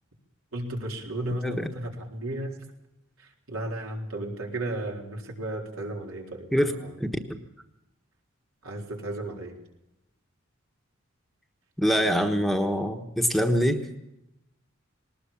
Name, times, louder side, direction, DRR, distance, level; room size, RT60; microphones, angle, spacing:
voice 1, 0.5-2.6 3.5-7.0 8.6-9.5 12.0-12.2, right 1 dB, 80° right, 0 dB, 4.1 m, -34 dB
voice 2, 11.8-13.8, equal, ahead, 5 dB, 1.2 m, -24 dB
19.5 x 19.5 x 7.2 m, 0.87 s
head